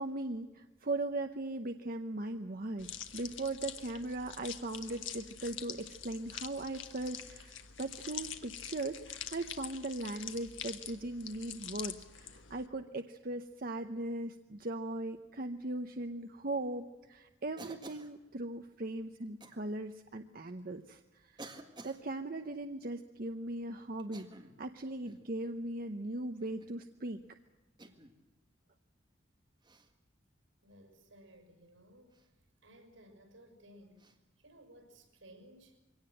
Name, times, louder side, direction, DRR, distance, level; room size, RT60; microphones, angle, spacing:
voice 1, 0.0-21.4 21.8-24.3 24.6-27.2, right 2 dB, 50° right, 6 dB, 0.8 m, -39 dB
sound 1, 2.8-12.7, left 9 dB, 80° left, 1.5 m, -45 dB
Cough, 17.6-18.1 19.4-19.6 20.5-20.6 21.4-22.0 24.0-24.6 25.0-25.3 26.4-26.8 27.8-28.2 29.6-29.9 32.1-32.3 34.0-34.2, right 2 dB, 25° right, 1.8 m, -51 dB
voice 2, 30.6-32.3 32.6-35.8, right 1 dB, 80° right, 6 dB, 6.4 m, -58 dB
23.0 x 18.0 x 7.7 m, 1.1 s
head